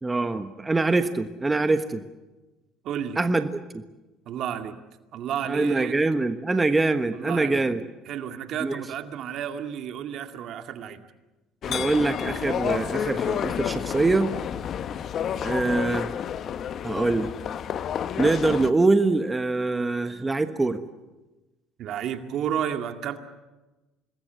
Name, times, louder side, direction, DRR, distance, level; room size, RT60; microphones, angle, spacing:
voice 1, 0.0-2.0 3.2-3.8 5.5-7.8 8.6-8.8 11.7-14.3 15.4-16.1 16.8-17.3 18.2-20.8, right 3 dB, 15° right, 9 dB, 1.3 m, -24 dB
voice 2, 2.8-3.2 4.3-4.8 5.1-6.0 7.1-7.6 8.1-11.0 21.8-23.2, right 9 dB, 60° right, 7 dB, 2.2 m, -31 dB
sound 1, 11.6-18.7, left 8 dB, 50° left, 1.1 m, -30 dB
26.5 x 20.5 x 8.1 m, 1.1 s
supercardioid pair, 85°, 0 cm